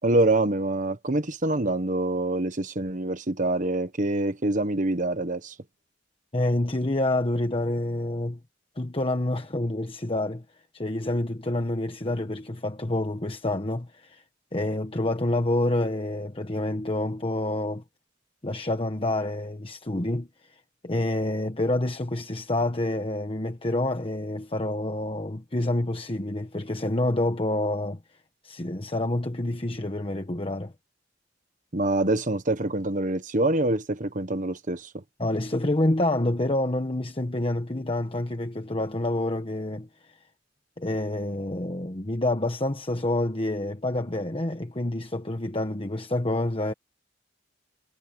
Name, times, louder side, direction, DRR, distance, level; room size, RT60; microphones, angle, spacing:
voice 1, 0.0-5.5 31.7-34.9, right 2 dB, 45° right, 1.4 m, -25 dB
voice 2, 6.3-8.4 8.8-10.4 10.7-14.2 14.5-17.8 18.4-28.0 28.4-30.7 35.2-40.2 40.8-46.7, left 1 dB, 30° left, 1.3 m, -28 dB
head